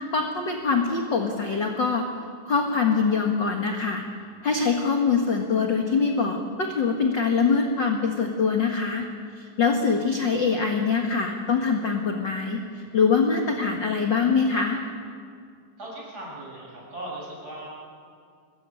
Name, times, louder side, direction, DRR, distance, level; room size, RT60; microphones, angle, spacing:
voice 1, 0.1-2.0 2.5-4.0 4.4-9.1 9.4-12.6 12.9-14.8, left 5 dB, 40° left, 3 dB, 1.8 m, -23 dB
voice 2, 15.8-17.7, right 1 dB, 25° right, -4 dB, 8.2 m, -38 dB
24.5 x 21.5 x 8.6 m, 2.2 s
omnidirectional pair, 3.8 m